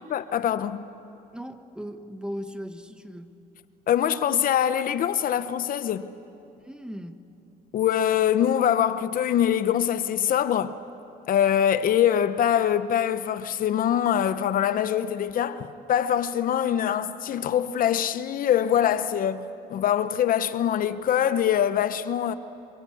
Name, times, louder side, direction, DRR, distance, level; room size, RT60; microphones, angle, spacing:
voice 1, 0.1-0.8 3.9-6.1 7.7-10.8 11.3-22.3, left 10 dB, 55° left, 0.9 m, -24 dB
voice 2, 1.3-3.3 6.6-7.2, equal, 5° right, 1.4 m, -37 dB
26.5 x 22.5 x 8.5 m
cardioid pair, 110°, 17 cm